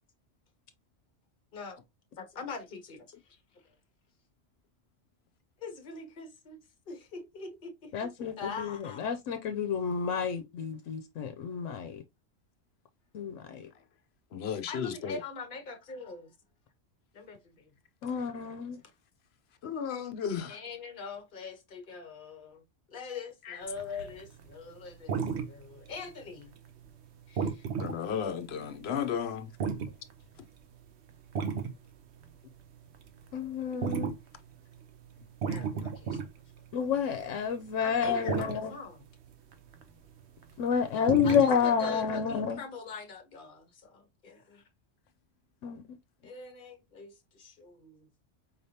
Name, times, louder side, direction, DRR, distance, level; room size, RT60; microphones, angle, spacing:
voice 1, 2.2-3.1 5.6-6.6 6.9-9.0 14.6-16.3 17.1-17.7 20.5-25.2 25.4-26.5 27.3-27.6 35.5-36.2 37.8-39.1 41.2-44.6 46.2-48.1, left 4 dB, 45° left, 1.1 m, -43 dB
voice 2, 7.9-12.0 13.1-13.7 18.0-18.8 33.3-34.1 36.7-38.7 40.6-42.6 45.6-45.8, left 7 dB, 90° left, 1.0 m, -29 dB
voice 3, 14.3-15.2 19.6-20.6 23.5-23.6 27.8-29.5 35.5-35.6, left 8 dB, 65° left, 0.9 m, -34 dB
sound 1, 23.8-24.5 24.8-26.2 26.6-26.9 27.4-29.0 29.4-30.4 31.1-31.7 32.2-32.3 32.6-37.2 37.6-38.0 38.2-38.6 39.5-39.8 40.2-40.6 41.0-41.6, right 6 dB, 65° right, 1.0 m, -34 dB
4.7 x 3.3 x 2.7 m
omnidirectional pair, 1.3 m